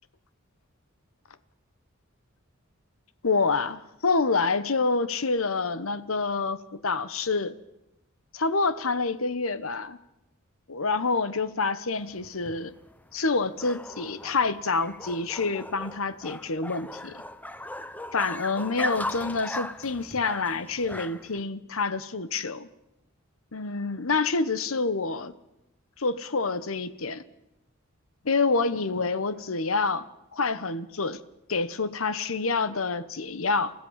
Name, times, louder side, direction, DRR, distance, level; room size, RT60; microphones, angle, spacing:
voice 1, 3.2-6.6 6.8-7.5 8.3-10.0 10.7-12.7 13.1-17.2 18.1-22.7 23.5-25.3 26.0-27.2 28.2-30.0 30.3-31.2 31.5-33.7, left 4 dB, 80° left, 14 dB, 1.1 m, -27 dB
sound 1, 12.0-21.4, left 1 dB, 10° left, 0.8 m, -38 dB
28.5 x 15.0 x 7.4 m, 0.90 s
head